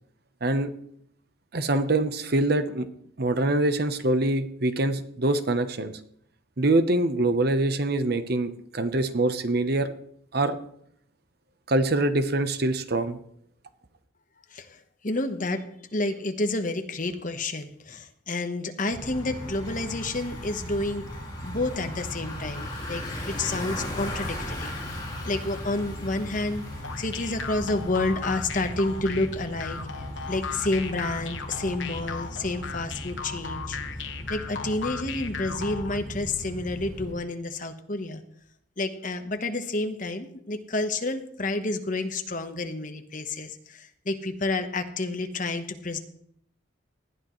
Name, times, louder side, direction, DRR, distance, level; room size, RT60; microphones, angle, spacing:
voice 1, 1.5-2.9 3.2-6.0 6.6-9.9 10.3-10.5 11.7-13.2, right 2 dB, 50° right, 10 dB, 0.9 m, -24 dB
voice 2, 14.5-21.1 21.4-25.0 25.2-26.6 27.0-29.8 30.3-33.8 34.3-38.2 38.8-46.0, left 2 dB, 40° left, 7 dB, 1.2 m, -30 dB
Bicycle, 18.9-37.1, left 1 dB, 20° left, 5.2 m, -37 dB
sound 1, 26.8-36.0, left 6 dB, 65° left, 1.3 m, -37 dB
19.0 x 12.5 x 3.2 m, 0.67 s
head